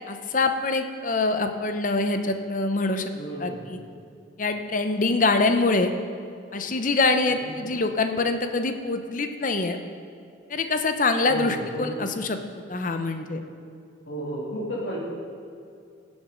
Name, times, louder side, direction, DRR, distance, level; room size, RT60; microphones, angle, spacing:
voice 1, 0.1-3.1 3.4-3.8 4.4-5.9 6.5-9.8 10.5-12.4 12.7-13.4, left 3 dB, 40° left, 7 dB, 0.8 m, -24 dB
voice 2, 3.2-3.8 7.3-7.5 11.3-12.0 14.1-15.0, equal, 65° left, -5 dB, 3.0 m, -33 dB
16.5 x 7.2 x 5.2 m, 2.4 s
head